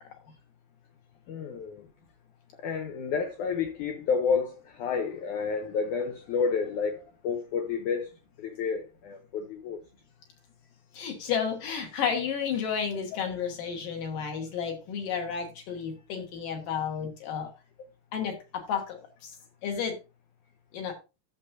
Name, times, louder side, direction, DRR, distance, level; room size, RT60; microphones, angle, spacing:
voice 1, 1.3-1.9 2.6-8.1 8.4-9.8, left 5 dB, 85° left, 1.7 m, -30 dB
voice 2, 10.9-17.5 18.1-19.3 19.6-20.0 20.7-20.9, left 7 dB, 65° left, 2.7 m, -32 dB
11.5 x 7.4 x 2.7 m
omnidirectional pair, 4.6 m